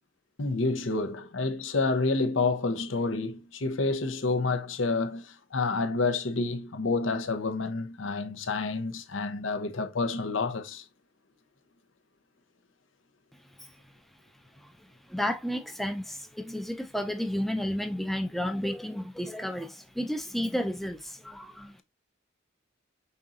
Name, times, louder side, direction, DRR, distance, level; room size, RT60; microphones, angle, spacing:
voice 1, 0.4-10.8, left 3 dB, 70° left, 0.8 m, -29 dB
voice 2, 15.1-21.8, equal, ahead, 0.5 m, -32 dB
5.4 x 3.8 x 2.5 m
head